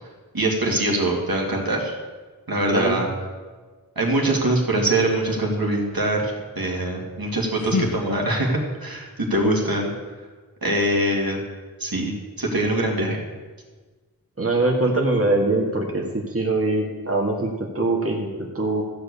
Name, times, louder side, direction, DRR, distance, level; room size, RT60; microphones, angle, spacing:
voice 1, 0.3-1.9 2.5-3.1 4.0-9.9 10.6-11.4 11.8-13.2, right 1 dB, 75° right, -1 dB, 2.2 m, -23 dB
sound 1, 7.1-8.8, left 4 dB, 70° left, 0.8 m, -31 dB
voice 2, 14.4-18.3 18.6-18.8, right 2 dB, 40° right, -1 dB, 1.8 m, -22 dB
14.5 x 5.2 x 8.3 m, 1.4 s
wide cardioid pair, 55°, 36 cm